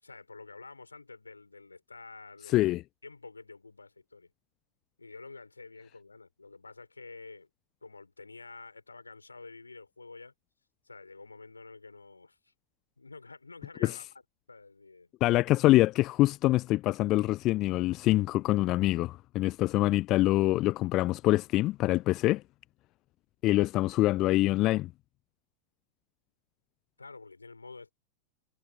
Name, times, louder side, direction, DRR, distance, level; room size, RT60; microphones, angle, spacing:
voice 1, 0.0-2.7 3.0-4.3 5.0-7.5 7.8-10.3 10.8-12.5 13.0-14.1 14.5-15.1 27.0-27.9, left 3 dB, 80° left, 4.2 m, -49 dB
voice 2, 2.5-2.8 13.8-14.0 15.2-22.4 23.4-24.9, left 17 dB, 35° left, 0.6 m, -25 dB
figure-of-eight pair, 90°, 0 cm